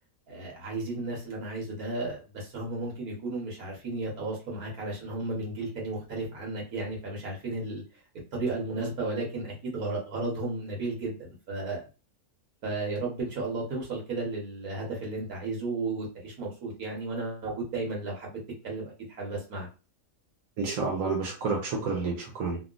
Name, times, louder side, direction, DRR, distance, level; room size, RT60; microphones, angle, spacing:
voice 1, 0.3-7.8 8.3-11.8 12.6-19.7, right 2 dB, 85° right, -2 dB, 1.7 m, -34 dB
voice 2, 20.6-22.6, right 4 dB, 70° right, -1 dB, 1.2 m, -29 dB
3.5 x 2.3 x 2.4 m, 0.32 s
omnidirectional pair, 1.5 m